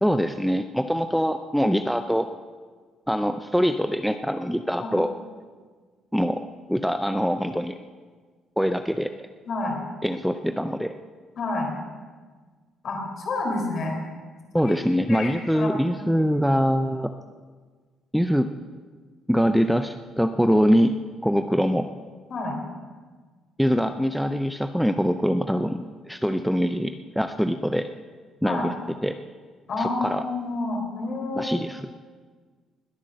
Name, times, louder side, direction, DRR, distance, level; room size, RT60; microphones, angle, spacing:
voice 1, 0.0-2.3 3.1-5.1 6.1-6.4 6.7-7.8 8.6-9.3 10.0-10.9 14.5-17.1 18.1-18.5 19.3-21.9 23.6-27.9 28.4-28.7 29.0-29.2 29.8-30.2 31.4-31.9, equal, ahead, 8 dB, 0.5 m, -23 dB
voice 2, 9.5-9.8 11.4-11.7 12.8-13.9 14.6-14.8 15.1-16.3 22.3-22.6 28.4-28.6 29.7-31.8, left 2 dB, 50° left, 2 dB, 3.9 m, -29 dB
20.5 x 8.6 x 6.4 m, 1.5 s
cardioid pair, 120°, 0 cm